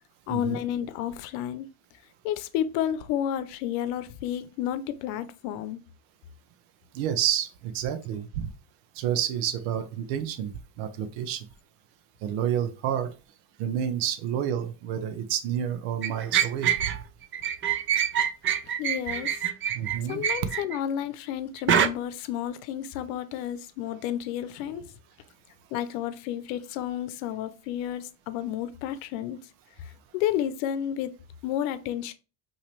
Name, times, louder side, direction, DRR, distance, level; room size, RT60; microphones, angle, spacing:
voice 1, 0.3-1.7 2.2-5.8 18.8-19.4 20.1-24.9 25.7-29.4 29.8-31.1 31.4-32.1, left 10 dB, 85° left, 0.7 m, -31 dB
voice 2, 6.9-8.5 8.9-11.4 12.2-13.1 13.6-16.9 19.7-20.2, right 9 dB, 80° right, 0.9 m, -29 dB
sound 1, 16.0-17.0 17.3-20.8 21.7-21.9, right 9 dB, 30° right, 0.4 m, -25 dB
5.7 x 2.9 x 3.2 m
supercardioid pair, 110°, 48 cm